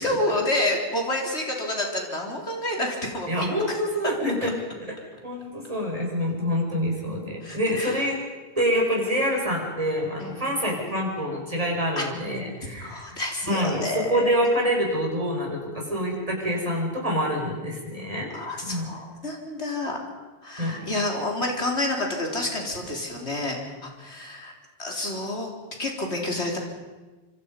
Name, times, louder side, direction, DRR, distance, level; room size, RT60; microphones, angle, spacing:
voice 1, 0.0-3.8 7.4-8.0 10.2-10.5 12.0-12.1 12.6-14.3 18.3-20.0 20.4-24.5 24.8-25.5 25.8-26.6, left 1 dB, 80° left, 1 dB, 4.2 m, -29 dB
voice 2, 3.3-4.5 5.2-8.2 8.6-13.2 13.4-18.3 18.6-18.9 20.6-20.9, equal, 30° right, -1 dB, 5.6 m, -26 dB
26.0 x 25.5 x 5.4 m, 1.3 s
omnidirectional pair, 1.1 m